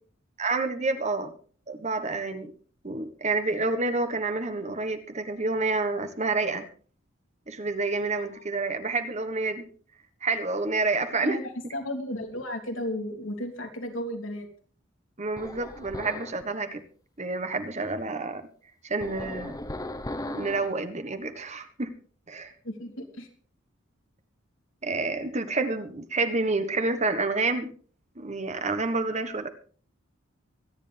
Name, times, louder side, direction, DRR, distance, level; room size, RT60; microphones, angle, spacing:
voice 1, 0.4-1.3 1.7-2.5 2.8-6.6 7.5-9.7 10.2-11.4 15.2-16.8 17.2-18.4 18.8-19.6 20.2-21.9 22.3-22.5 24.8-27.7 28.2-29.5, right 3 dB, 35° right, 10 dB, 1.4 m, -28 dB
voice 2, 11.1-11.4 11.7-14.5 22.6-23.3, left 1 dB, 75° left, 3 dB, 3.1 m, -34 dB
sound 1, 15.4-16.4 19.0-20.8, left 1 dB, 20° left, 1.0 m, -37 dB
24.5 x 10.5 x 3.5 m, 0.41 s
head